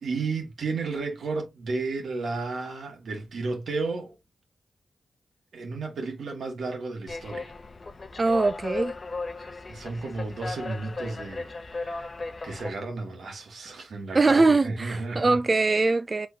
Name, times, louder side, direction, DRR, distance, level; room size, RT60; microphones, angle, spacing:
voice 1, 0.0-4.2 5.5-7.5 9.4-12.1 12.4-15.4, right 3 dB, 80° right, 1.8 m, -33 dB
sound 1, 7.1-12.7, left 3 dB, 45° left, 0.7 m, -36 dB
voice 2, 8.2-9.0 14.1-16.3, right 3 dB, 40° right, 0.4 m, -22 dB
4.7 x 3.9 x 2.8 m
cardioid pair, 60°, 0 cm